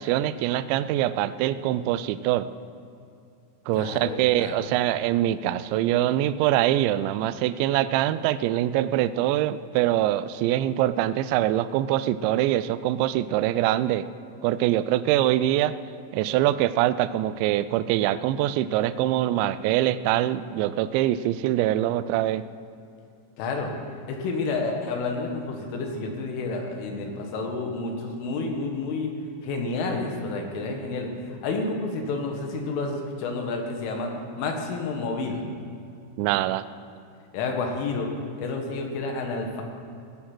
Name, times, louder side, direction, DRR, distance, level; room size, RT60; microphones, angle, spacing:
voice 1, 0.0-2.5 3.7-14.0 14.4-15.8 16.1-22.4 36.2-36.6, right 13 dB, 85° right, 13 dB, 2.6 m, -24 dB
voice 2, 3.7-4.7 23.4-23.7 24.1-29.1 29.4-34.1 34.4-35.4 37.3-38.1 38.4-39.6, left 3 dB, 80° left, 2 dB, 4.0 m, -30 dB
16.5 x 10.0 x 6.1 m, 2.6 s
omnidirectional pair, 5.7 m